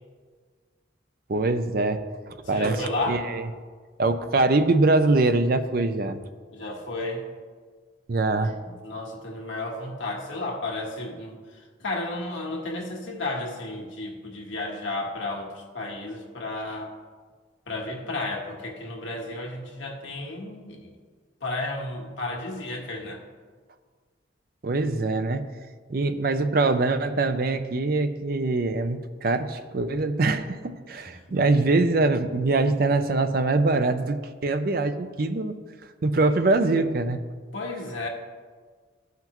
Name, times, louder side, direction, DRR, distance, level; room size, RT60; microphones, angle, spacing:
voice 1, 1.3-2.0 2.5-3.4 4.0-6.2 8.1-8.5 24.6-25.5 25.9-35.6 36.0-37.2, right 3 dB, 50° right, 9 dB, 0.5 m, -23 dB
voice 2, 2.4-3.3 6.5-7.2 8.6-16.9 17.7-20.9 21.4-23.2 31.0-31.1 37.5-38.1, left 2 dB, 80° left, 0 dB, 1.5 m, -33 dB
14.0 x 5.8 x 3.0 m, 1.6 s
head